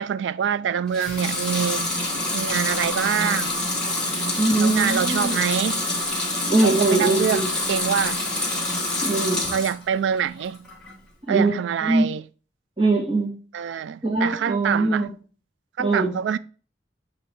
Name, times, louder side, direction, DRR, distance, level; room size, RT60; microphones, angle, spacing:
voice 1, 0.0-1.9 2.3-3.5 4.6-5.8 6.6-8.2 9.5-10.6 11.3-12.2 13.5-15.0 15.8-16.4, right 8 dB, 80° right, 0.3 m, -25 dB
Water tap faucet / Sink (filling or washing) / Liquid, 0.9-9.8 10.2-10.9, left 2 dB, 5° left, 1.2 m, -26 dB
voice 2, 4.4-5.4 6.5-7.5 9.0-9.5 11.3-12.1 12.8-13.4 14.0-15.1 15.8-16.1, right 2 dB, 30° right, 1.7 m, -22 dB
7.5 x 3.1 x 4.3 m
head